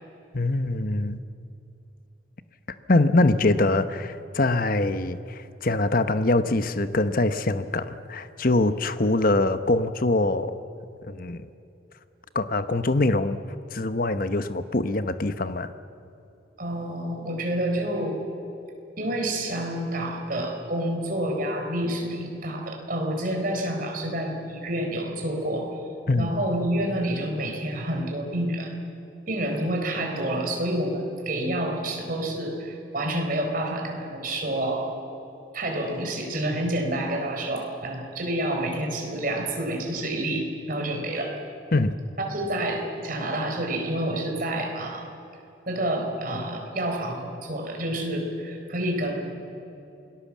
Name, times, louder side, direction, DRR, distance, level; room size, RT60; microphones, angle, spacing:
voice 1, 0.3-1.2 2.9-10.6 11.0-11.5 12.3-13.4 13.7-15.7 26.1-26.3 41.7-41.9, left 2 dB, 45° left, 11 dB, 0.9 m, -23 dB
voice 2, 16.6-18.2 19.0-25.7 26.2-28.7 29.3-34.9 35.5-41.4 42.2-45.1 45.7-49.4, right 1 dB, 45° right, 2 dB, 4.3 m, -28 dB
27.5 x 19.0 x 7.4 m, 2.8 s
head